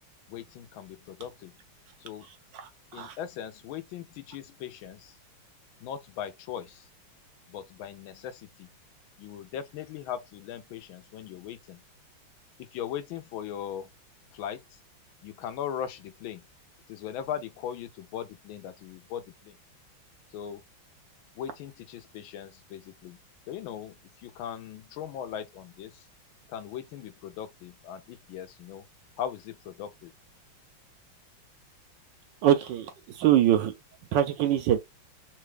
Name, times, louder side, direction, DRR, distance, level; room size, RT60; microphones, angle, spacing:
voice 1, 0.3-1.6 2.0-2.3 2.9-5.1 5.8-6.9 7.5-8.7 9.2-11.8 12.6-13.9 14.3-14.6 15.2-16.4 16.9-19.6 20.3-20.6 21.4-23.2 23.5-26.0 26.5-28.8 29.2-30.1, left 9 dB, 80° left, 1.4 m, -39 dB
voice 2, 2.5-3.2 32.4-33.7 34.1-34.8, right 11 dB, 75° right, 1.1 m, -24 dB
3.8 x 2.2 x 3.2 m
omnidirectional pair, 2.2 m